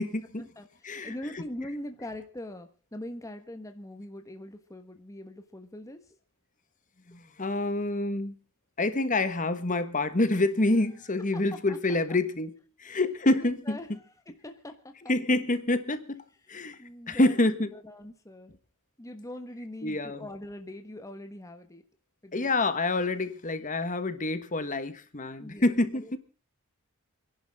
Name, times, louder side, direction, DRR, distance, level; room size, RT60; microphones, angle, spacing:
voice 1, 0.0-0.4 0.8-1.1 7.1-8.3 8.8-12.5 12.8-13.8 15.1-16.2 16.5-16.8 17.1-17.7 19.8-20.3 22.3-26.2, left 2 dB, 35° left, 11 dB, 1.3 m, -27 dB
voice 2, 0.6-6.1 11.2-11.8 12.9-13.0 13.4-15.1 16.4-17.4 17.7-18.5 19.0-21.8 22.2-22.5 25.4-26.2, left 1 dB, 15° left, 6 dB, 1.2 m, -42 dB
29.0 x 11.0 x 3.6 m, 0.35 s
head